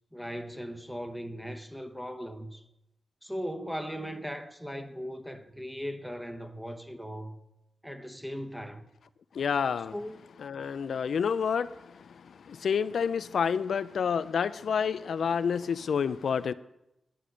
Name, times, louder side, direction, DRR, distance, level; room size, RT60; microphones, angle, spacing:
voice 1, 0.1-2.6 3.2-7.4 7.8-8.8 9.9-10.2, equal, ahead, 1.2 m, -38 dB
voice 2, 9.4-9.9 10.4-11.7 12.5-16.5, left 6 dB, 75° left, 0.3 m, -28 dB
10.5 x 8.2 x 6.3 m
cardioid pair, 85°, 0 cm